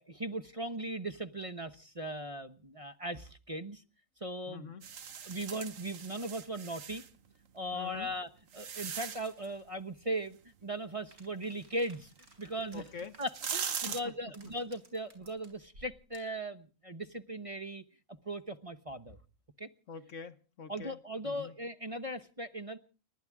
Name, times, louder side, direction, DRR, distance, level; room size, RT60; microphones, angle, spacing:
voice 1, 0.0-3.8 4.2-4.7 5.2-7.0 7.5-8.3 8.5-12.1 12.4-12.8 13.2-17.8 18.2-19.2 19.6-19.7 20.7-22.8, right 1 dB, 25° right, 1.0 m, -38 dB
voice 2, 4.5-4.8 7.7-8.1 12.7-13.2 13.9-14.3 19.9-21.0 21.2-21.5, left 6 dB, 60° left, 1.4 m, -45 dB
sound 1, 4.8-7.1 7.9-9.5 12.5-12.6 13.1-14.0, right 7 dB, 65° right, 1.5 m, -40 dB
sound 2, 11.1-16.4, right 2 dB, 90° right, 4.8 m, -60 dB
30.0 x 13.0 x 3.6 m
omnidirectional pair, 1.5 m